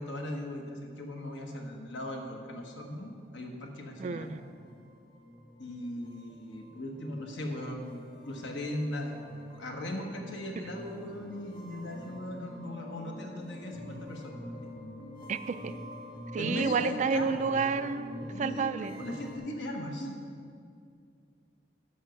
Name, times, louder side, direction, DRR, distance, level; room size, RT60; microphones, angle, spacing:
voice 1, 0.0-4.3 5.6-9.2 9.5-14.4 16.4-17.8 18.3-20.2, left 1 dB, 75° left, 1 dB, 1.4 m, -38 dB
sound 1, 2.7-19.4, left 1 dB, 25° left, 1.2 m, -47 dB
voice 2, 4.0-4.4 15.3-15.7 16.3-19.0, right 5 dB, 40° right, 12 dB, 0.3 m, -30 dB
10.0 x 5.8 x 6.4 m, 2.3 s
head